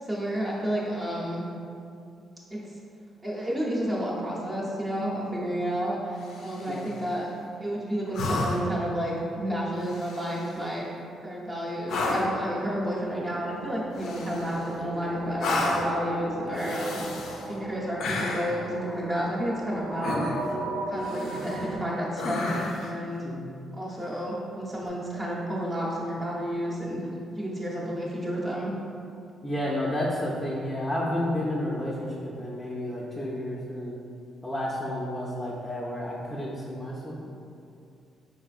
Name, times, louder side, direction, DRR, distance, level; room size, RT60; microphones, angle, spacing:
voice 1, 0.0-1.4 2.5-2.6 3.2-7.3 7.6-10.8 11.2-17.0 17.5-20.2 20.9-23.2 23.7-27.0 27.3-28.7, equal, 25° right, -5 dB, 0.8 m, -31 dB
sound 1, 6.2-6.9 8.1-8.8 9.8-10.5 11.9-12.4 14.0-14.7 15.4-16.0 16.5-17.5 18.0-18.6 20.0-20.6 21.0-21.7 22.2-22.9 24.8-24.9, left 2 dB, 75° left, 0.4 m, -31 dB
sound 2, 13.0-21.8, right 1 dB, 65° right, 0.8 m, -35 dB
voice 2, 29.4-34.0 34.4-37.3, left 1 dB, 10° left, -6 dB, 0.5 m, -31 dB
4.4 x 3.3 x 2.4 m, 2.5 s
cardioid pair, 90°, 0 cm